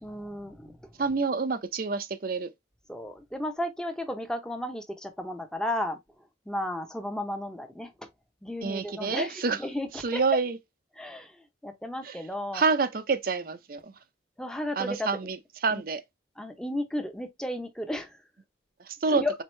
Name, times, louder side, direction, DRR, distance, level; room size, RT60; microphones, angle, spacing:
voice 1, 0.0-0.8 2.9-6.0 6.5-8.1 8.4-10.2 11.0-12.6 14.4-15.1 15.7-15.8 16.4-18.2 19.1-19.3, left 1 dB, 5° left, 0.7 m, -34 dB
voice 2, 1.0-2.5 8.6-9.6 10.0-10.6 12.0-12.2 12.5-13.9 14.8-15.4 15.6-16.0 18.8-19.2, right 4 dB, 50° right, 0.5 m, -27 dB
4.6 x 3.5 x 3.1 m
head